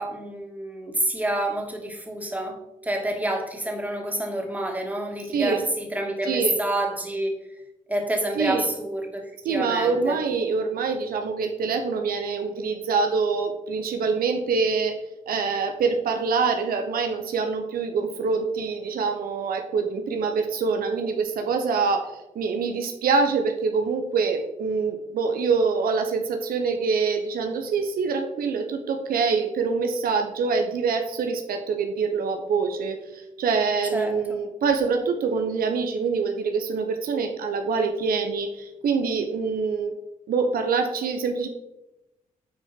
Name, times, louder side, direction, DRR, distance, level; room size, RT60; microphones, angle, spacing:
voice 1, 0.0-7.3 7.9-9.2 9.5-10.2 33.9-34.4, right 1 dB, 10° right, 1 dB, 2.5 m, -28 dB
voice 2, 5.3-5.6 6.2-6.6 8.4-8.7 9.4-15.0 15.3-39.9 40.3-41.5, right 5 dB, 80° right, 5 dB, 0.8 m, -25 dB
9.2 x 4.6 x 4.4 m, 0.94 s
supercardioid pair, 50°, 15 cm